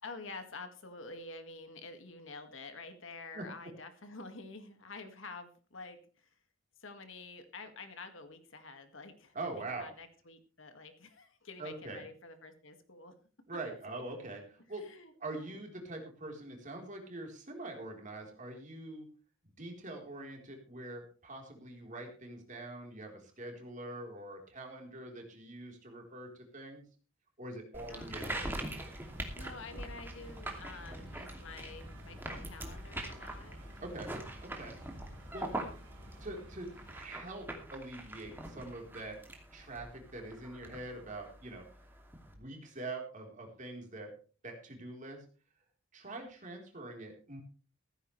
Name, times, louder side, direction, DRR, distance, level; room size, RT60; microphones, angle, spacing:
voice 1, 0.0-6.3 6.8-13.2 14.7-15.1 15.4-15.6 27.9-28.4 29.4-33.6 35.4-35.7 46.1-46.3, left 3 dB, 65° left, 7 dB, 2.0 m, -49 dB
voice 2, 9.3-9.9 11.6-12.0 13.5-14.9 15.2-19.1 19.6-26.8 27.4-28.5 33.8-34.8 35.3-35.5 36.2-39.2 39.5-41.6 42.3-44.1 44.4-45.2 45.9-47.4, right 2 dB, 40° right, 1 dB, 4.0 m, -44 dB
sound 1, 27.7-42.3, right 1 dB, 10° right, 2.6 m, -43 dB
sound 2, 28.1-37.0, right 1 dB, 55° right, 3.8 m, -54 dB
15.5 x 14.5 x 3.3 m, 0.38 s
head